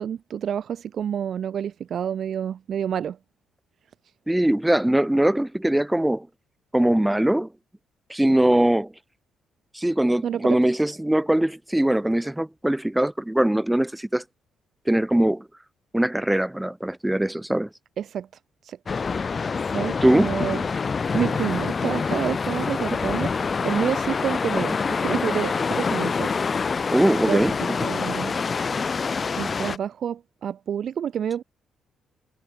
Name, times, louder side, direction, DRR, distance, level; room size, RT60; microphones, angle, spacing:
voice 1, 0.0-3.2 10.2-10.6 18.0-18.3 18.6-19.0 19.7-20.6 21.1-26.3 27.3-28.3 29.4-31.4, right 8 dB, 60° right, 0.6 m, -29 dB
voice 2, 4.3-6.3 6.7-7.5 8.1-8.9 9.7-14.2 14.9-15.4 15.9-17.7 20.0-20.3 26.9-27.9, right 1 dB, 5° right, 0.4 m, -21 dB
sound 1, 18.9-29.8, left 5 dB, 35° left, 0.7 m, -26 dB
cardioid pair, 90°, 0 cm